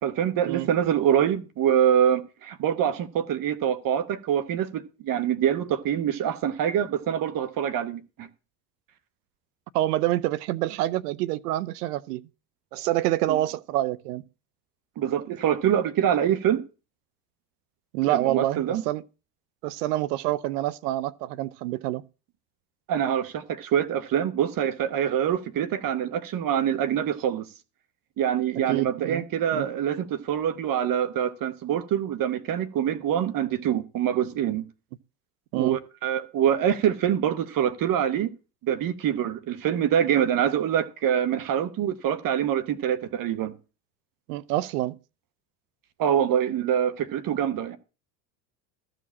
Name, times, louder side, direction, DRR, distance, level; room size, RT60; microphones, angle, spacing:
voice 1, 0.0-8.3 13.3-13.4 15.0-16.6 18.1-18.8 22.9-27.5 28.2-34.6 35.5-38.3 38.6-43.5 46.0-47.8, right 9 dB, 45° right, 1.1 m, -25 dB
voice 2, 9.7-12.2 12.7-14.2 17.9-19.0 19.6-22.0 28.7-29.2 29.5-29.7 35.5-35.8 44.3-45.0, right 15 dB, 80° right, 0.7 m, -27 dB
13.5 x 5.1 x 7.1 m
hypercardioid pair, 85°, 47 cm